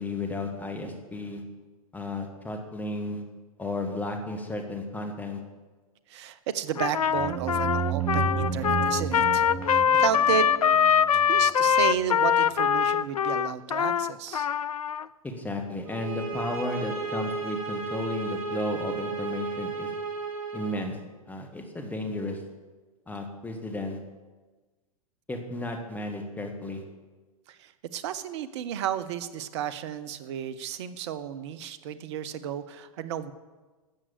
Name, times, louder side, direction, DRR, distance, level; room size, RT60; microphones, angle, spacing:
voice 1, 0.0-1.4 1.9-3.2 3.6-5.4 15.2-19.9 20.5-21.0 21.3-22.4 23.1-24.0 25.3-26.8, left 2 dB, 10° left, 3 dB, 2.0 m, -33 dB
voice 2, 6.1-10.4 11.1-14.5 27.5-33.3, right 9 dB, 50° right, 13 dB, 1.0 m, -32 dB
Trumpet, 6.8-15.1, left 8 dB, 80° left, 0.4 m, -23 dB
sound 1, 7.1-11.7, right 7 dB, 20° right, 2.4 m, -32 dB
sound 2, 15.9-20.8, right 4 dB, 75° right, 2.4 m, -34 dB
13.0 x 7.5 x 8.2 m, 1.3 s
figure-of-eight pair, 105°, 18 cm